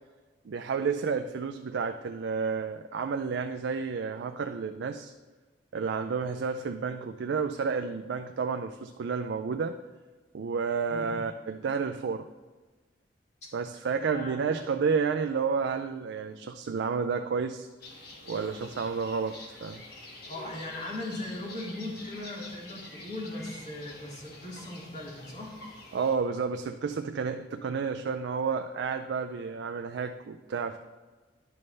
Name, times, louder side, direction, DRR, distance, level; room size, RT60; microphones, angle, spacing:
voice 1, 0.4-5.1 5.7-9.8 10.3-12.3 13.5-17.7 18.3-19.8 25.9-30.8, right 5 dB, 75° right, 6 dB, 0.4 m, -31 dB
voice 2, 14.1-14.6 20.3-25.5, left 1 dB, 40° left, -5 dB, 2.3 m, -39 dB
sound 1, 17.8-26.2, left 2 dB, 60° left, 1.5 m, -47 dB
10.5 x 5.3 x 3.3 m, 1.3 s
head